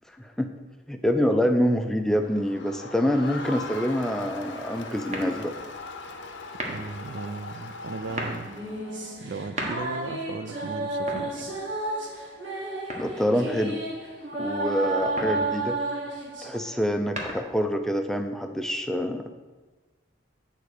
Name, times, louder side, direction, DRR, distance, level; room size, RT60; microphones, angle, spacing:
voice 1, 0.2-0.5 0.9-5.5 13.0-13.8 14.4-15.8 16.4-19.2, equal, ahead, 5 dB, 0.4 m, -26 dB
Crowd, 2.2-9.0, left 3 dB, 70° left, 0.7 m, -40 dB
sound 1, 5.1-5.7 6.5-7.0 7.9-8.5 9.3-10.1 10.9-11.8 12.9-13.5 14.9-15.5 16.8-17.7, right 1 dB, 35° right, 1.2 m, -36 dB
voice 2, 6.6-8.5 9.2-11.5, right 4 dB, 60° right, 11 dB, 0.4 m, -36 dB
sound 2, 8.1-16.8, right 2 dB, 80° right, 1.5 m, -32 dB
8.6 x 4.0 x 6.5 m, 1.3 s
head